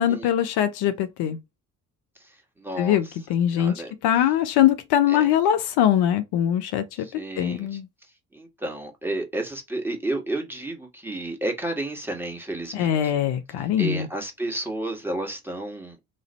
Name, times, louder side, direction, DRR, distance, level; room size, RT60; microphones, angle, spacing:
voice 1, 0.0-1.4 2.8-3.0 3.3-3.7 4.0-7.1 7.4-7.9 12.7-14.1, left 10 dB, 60° left, 0.7 m, -22 dB
voice 2, 2.6-3.1 3.5-3.9 5.1-5.3 7.0-7.8 8.3-13.2 13.6-16.0, right 1 dB, 5° right, 1.7 m, -31 dB
3.2 x 2.6 x 4.0 m
hypercardioid pair, 50°, 44 cm